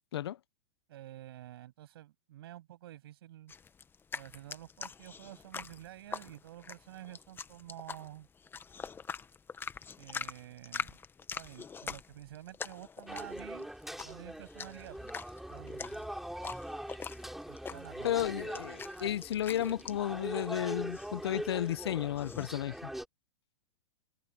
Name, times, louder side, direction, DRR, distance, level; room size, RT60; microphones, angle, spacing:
voice 1, 0.9-3.5 4.1-8.3 10.0-11.0 11.3-13.7 14.0-15.2 15.5-16.1 17.5-18.2, right 14 dB, 70° right, 7.1 m, -49 dB
sound 1, 3.5-22.5, left 6 dB, 15° left, 1.2 m, -45 dB
sound 2, 13.1-23.1, right 1 dB, ahead, 7.6 m, -42 dB
voice 2, 18.0-22.9, left 12 dB, 80° left, 0.6 m, -33 dB
hypercardioid pair, 120°, 13 cm